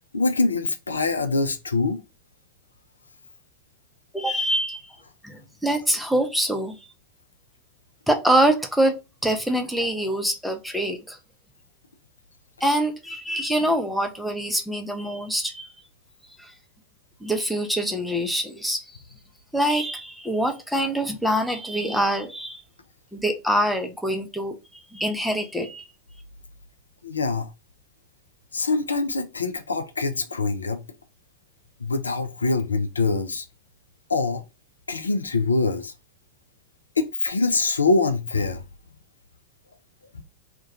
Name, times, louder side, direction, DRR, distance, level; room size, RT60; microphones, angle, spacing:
voice 1, 0.1-2.0 27.0-27.5 28.5-30.8 31.8-33.5 34.1-34.4 34.9-35.9 37.0-38.6, left 3 dB, 75° left, 0.3 m, -24 dB
voice 2, 4.1-5.0 5.2-6.8 8.1-11.2 12.6-15.7 16.4-16.5 17.2-19.0 19.5-22.6 23.1-24.6 24.9-25.8, right 1 dB, ahead, 0.5 m, -25 dB
2.2 x 2.1 x 2.7 m
figure-of-eight pair, 90°, 0 cm